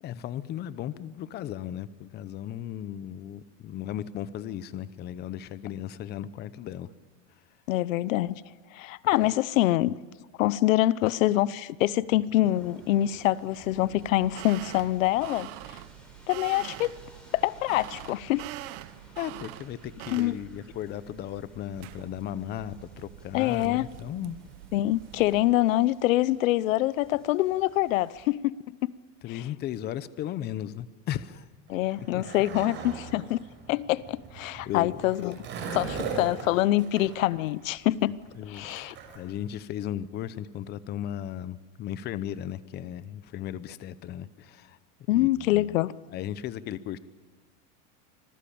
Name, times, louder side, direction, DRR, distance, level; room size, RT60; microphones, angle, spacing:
voice 1, 0.0-6.9 19.2-24.4 29.2-31.5 32.0-32.3 34.7-35.0 38.3-44.8 45.1-45.8 46.1-47.0, left 11 dB, 25° left, 0.8 m, -36 dB
voice 2, 7.7-8.4 8.7-10.0 10.4-15.5 16.3-16.9 17.3-18.4 20.1-20.4 23.3-23.9 24.7-28.7 31.7-33.4 33.7-35.4 35.7-38.2 38.5-38.9 45.1-45.9, left 15 dB, 80° left, 0.9 m, -25 dB
sound 1, 12.4-28.2, right 1 dB, ahead, 7.3 m, -55 dB
sound 2, 14.0-25.4, right 16 dB, 50° right, 1.0 m, -45 dB
Skateboard, 31.7-39.2, right 4 dB, 30° right, 5.9 m, -39 dB
26.0 x 20.0 x 8.6 m
supercardioid pair, 155°, 39 cm